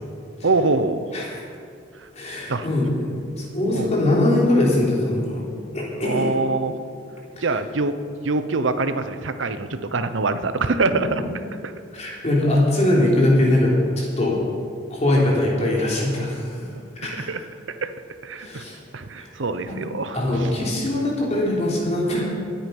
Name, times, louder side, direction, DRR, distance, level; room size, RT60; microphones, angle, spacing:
voice 1, 0.4-1.0 2.0-2.1 2.5-2.7 3.7-3.9 6.0-6.7 7.4-8.0 8.2-11.2 11.6-11.7 14.2-14.4 17.1-17.4 17.7-17.9 18.2-18.6 18.9-20.5, right 3 dB, 80° right, 11 dB, 0.8 m, -24 dB
voice 2, 2.2-3.1 3.4-5.4 5.7-6.3 11.9-14.4 14.9-16.7 17.0-17.3 18.4-18.7 19.2-19.3 19.7-19.8 20.1-22.2, left 1 dB, 35° left, -4 dB, 3.5 m, -21 dB
22.0 x 8.9 x 5.4 m, 2.3 s
head